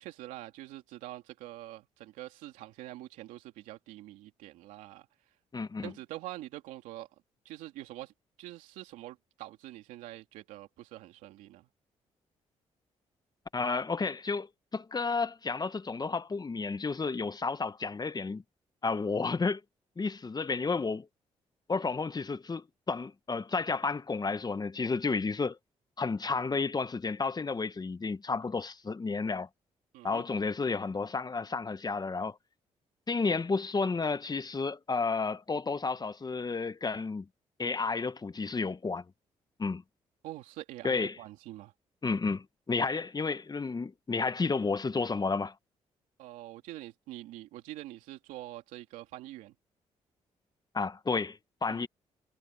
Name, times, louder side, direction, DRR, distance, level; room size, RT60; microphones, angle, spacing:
voice 1, 0.0-5.1 5.8-7.1 7.4-8.1 8.4-11.7 29.9-30.2 40.2-41.7 46.2-49.5 51.7-51.8, right 16 dB, 90° right, 2.9 m, -45 dB
voice 2, 5.5-5.9 13.5-18.4 18.8-19.6 20.0-21.1 21.7-25.6 26.0-29.5 30.0-32.4 33.1-37.3 37.6-39.0 39.6-39.8 40.8-41.2 42.0-45.5 50.7-51.9, left 4 dB, 30° left, 1.2 m, -31 dB
supercardioid pair, 60°, 13 cm